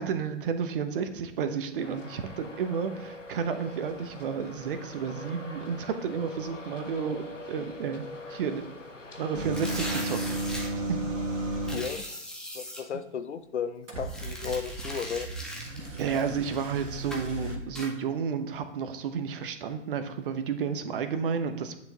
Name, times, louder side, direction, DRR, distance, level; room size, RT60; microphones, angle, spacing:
voice 1, 0.0-8.6 9.2-10.4 10.9-11.0 15.9-21.8, right 6 dB, 45° right, 9 dB, 0.9 m, -31 dB
Traffic noise roadway noise, 1.8-10.0, left 2 dB, 85° left, 1.3 m, -44 dB
sound 1, 9.3-11.9 13.9-17.6, right 1 dB, 85° right, 1.6 m, -34 dB
sound 2, 9.5-10.7 11.6-12.8 14.0-16.7 17.1-17.3 17.8-17.9, equal, ahead, 0.8 m, -39 dB
voice 2, 11.7-12.0 12.5-15.3, left 7 dB, 65° left, 11 dB, 0.7 m, -34 dB
9.8 x 6.1 x 2.9 m, 0.88 s
figure-of-eight pair, 110°, 37 cm